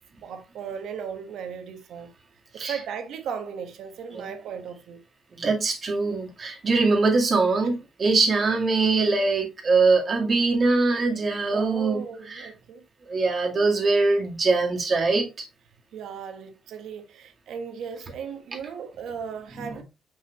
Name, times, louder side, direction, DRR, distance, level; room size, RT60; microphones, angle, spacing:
voice 1, 0.2-2.1 2.5-5.0 11.5-12.8 15.9-19.8, right 7 dB, 75° right, 1.2 m, -36 dB
voice 2, 5.3-12.5 13.1-15.5 19.5-19.8, right 3 dB, 40° right, 2.2 m, -23 dB
5.9 x 5.4 x 3.0 m
cardioid pair, 90°, 0 cm